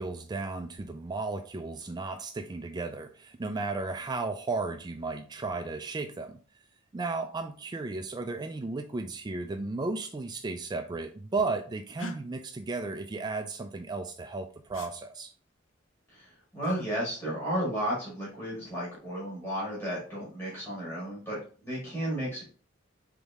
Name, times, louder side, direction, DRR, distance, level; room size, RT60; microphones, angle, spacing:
voice 1, 0.0-6.4 6.9-15.3, right 3 dB, 20° right, 6 dB, 0.3 m, -34 dB
sound 1, 12.0-12.2 14.7-14.9 16.6-16.9 18.6-19.1, left 1 dB, 75° left, 0.6 m, -42 dB
voice 2, 16.1-22.4, equal, 10° left, -8 dB, 1.9 m, -33 dB
4.0 x 3.5 x 3.5 m, 0.39 s
head